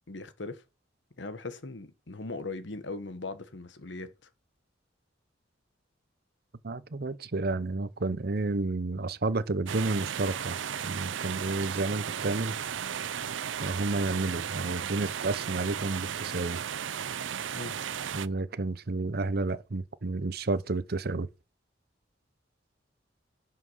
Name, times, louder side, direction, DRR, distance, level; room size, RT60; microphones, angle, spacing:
voice 1, 0.1-0.6 1.2-4.3 17.5-17.8, left 3 dB, 70° left, 1.2 m, -39 dB
voice 2, 6.6-10.6 10.8-12.6 13.6-16.6 18.1-21.3, right 3 dB, 55° right, 0.8 m, -31 dB
sound 1, 9.7-18.3, right 8 dB, 90° right, 0.6 m, -35 dB
11.0 x 5.7 x 5.6 m
head